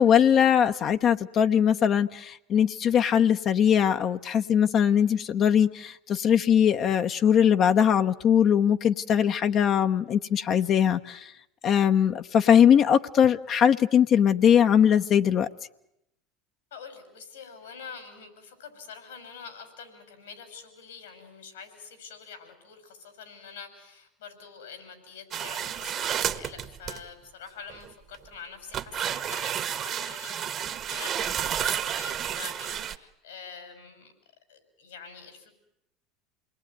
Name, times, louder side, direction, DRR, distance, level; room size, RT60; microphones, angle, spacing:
voice 1, 0.0-11.3 11.6-15.5, left 8 dB, 45° left, 7 dB, 0.9 m, -21 dB
voice 2, 16.7-34.1 34.5-35.5, left 6 dB, 85° left, 8 dB, 6.0 m, -45 dB
sound 1, 25.3-27.0 27.7-28.2 28.7-33.0, right 9 dB, 45° right, 1.4 m, -31 dB
28.0 x 20.0 x 9.4 m, 0.83 s
hypercardioid pair, 80°, 0 cm